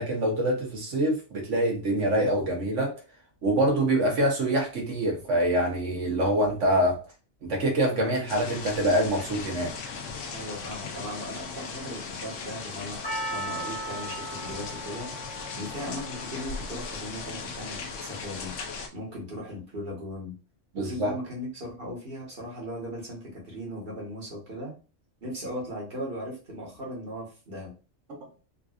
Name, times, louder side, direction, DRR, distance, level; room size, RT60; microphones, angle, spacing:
voice 1, 0.0-2.9 3.4-7.0 7.4-9.7 20.7-21.1, right 1 dB, 80° right, 0 dB, 1.4 m, -25 dB
sound 1, 8.3-18.9, left 5 dB, 80° left, 1.0 m, -38 dB
voice 2, 10.3-13.0 13.3-15.1 15.6-18.5 18.9-20.3 20.7-24.7 25.2-27.7, equal, 50° right, -4 dB, 1.6 m, -37 dB
Percussion, 13.0-17.4 17.7-17.8, right 1 dB, 30° left, 0.5 m, -38 dB
3.9 x 2.5 x 2.4 m, 0.33 s
omnidirectional pair, 1.2 m